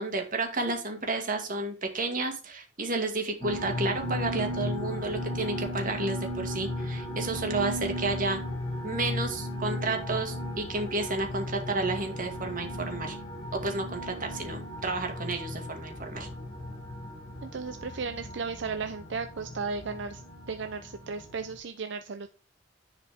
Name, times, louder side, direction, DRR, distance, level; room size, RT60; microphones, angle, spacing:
voice 1, 0.0-8.4 8.8-13.2 13.5-16.3, right 2 dB, 45° right, 3 dB, 2.2 m, -31 dB
sound 1, 3.4-21.6, left 1 dB, 30° left, 4.4 m, -36 dB
voice 2, 17.4-20.2 20.5-22.3, right 4 dB, 70° right, 8 dB, 0.6 m, -35 dB
10.5 x 4.9 x 3.6 m, 0.35 s
head